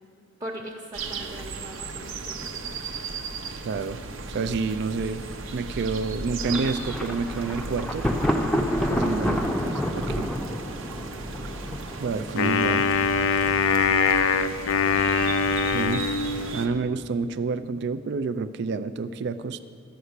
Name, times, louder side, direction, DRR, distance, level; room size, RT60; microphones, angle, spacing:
voice 1, 0.4-2.7, right 1 dB, 20° right, -4 dB, 0.9 m, -40 dB
sound 1, 0.9-16.7, right 3 dB, 75° right, 0.8 m, -36 dB
voice 2, 3.6-4.0 4.3-5.2 5.5-8.0 8.9-10.3 12.0-12.9 15.4-15.5 15.7-16.1 16.5-19.6, right 4 dB, 55° right, 12 dB, 0.3 m, -29 dB
Thunder, 6.4-12.2, equal, 5° left, 0.5 m, -28 dB
Wind instrument woodwind instrument, 12.4-16.8, left 5 dB, 85° left, 0.5 m, -23 dB
12.5 x 5.7 x 8.0 m, 2.4 s
head